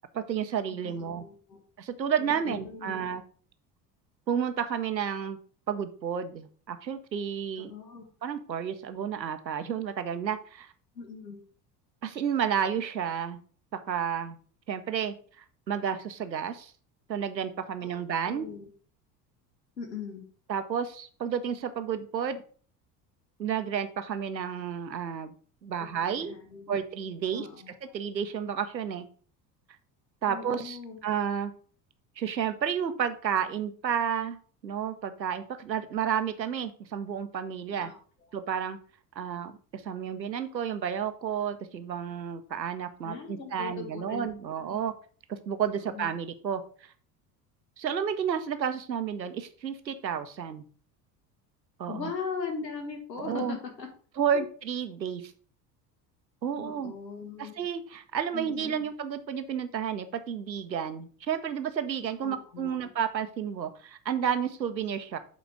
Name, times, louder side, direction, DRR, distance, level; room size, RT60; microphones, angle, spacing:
voice 1, 0.1-1.2 1.8-3.2 4.3-5.4 5.7-7.7 8.2-10.7 12.0-13.4 13.7-14.4 14.7-15.1 15.7-16.7 17.1-18.5 20.5-22.4 23.4-25.3 25.6-26.3 26.7-27.5 27.9-29.0 30.2-31.5 32.2-34.4 34.6-37.9 38.3-38.8 39.2-44.9 45.3-46.9 47.8-50.6 51.8-52.1 53.2-53.6 54.2-55.3 56.4-56.9 57.4-65.2, right 8 dB, 85° right, 10 dB, 0.8 m, -31 dB
voice 2, 0.7-1.6 2.2-3.0 7.6-8.1 11.0-11.4 17.8-18.0 18.3-18.7 19.8-20.2 26.1-26.7 27.3-28.0 30.3-31.0 37.7-38.0 43.0-44.2 44.6-44.8 45.9-46.1 51.9-53.9 56.6-57.5 58.3-58.9 62.2-62.9, left 5 dB, 80° left, 4 dB, 1.7 m, -39 dB
8.2 x 3.9 x 4.7 m, 0.43 s
figure-of-eight pair, 65°, 50 cm